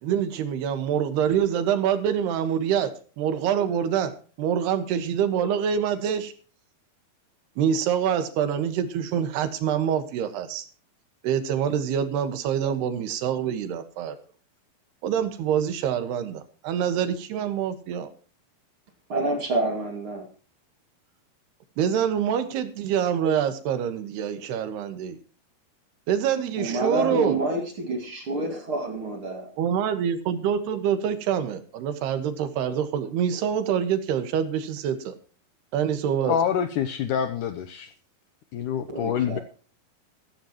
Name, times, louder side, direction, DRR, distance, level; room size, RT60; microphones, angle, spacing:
voice 1, 0.0-2.9 3.2-4.1 4.4-6.3 7.6-10.6 11.2-14.2 15.0-18.1 21.8-25.2 26.1-27.4 29.6-35.1 35.7-36.3, right 8 dB, 85° right, 10 dB, 3.5 m, -25 dB
voice 2, 19.1-20.3 26.6-29.5 38.9-39.4, right 2 dB, 40° right, 4 dB, 2.4 m, -28 dB
voice 3, 36.3-37.9 38.5-39.4, left 8 dB, 80° left, 10 dB, 1.8 m, -26 dB
15.0 x 14.5 x 3.0 m, 0.38 s
omnidirectional pair, 4.6 m